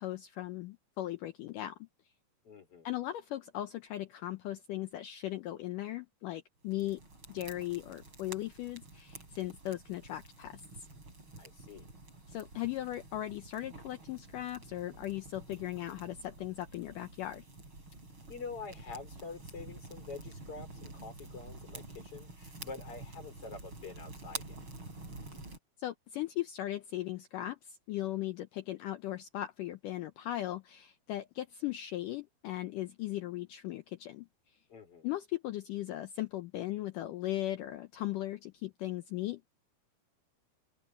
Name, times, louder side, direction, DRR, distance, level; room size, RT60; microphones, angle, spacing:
voice 1, 0.0-1.8 2.8-7.0 7.3-10.9 12.3-17.4 25.8-34.3 35.0-39.5, left 14 dB, 90° left, 1.8 m, -38 dB
voice 2, 2.4-2.9 11.4-11.9 18.3-24.6 34.7-35.1, left 4 dB, 35° left, 4.9 m, -46 dB
sound 1, 6.7-25.6, right 2 dB, 30° right, 7.6 m, -49 dB
open air
omnidirectional pair, 4.8 m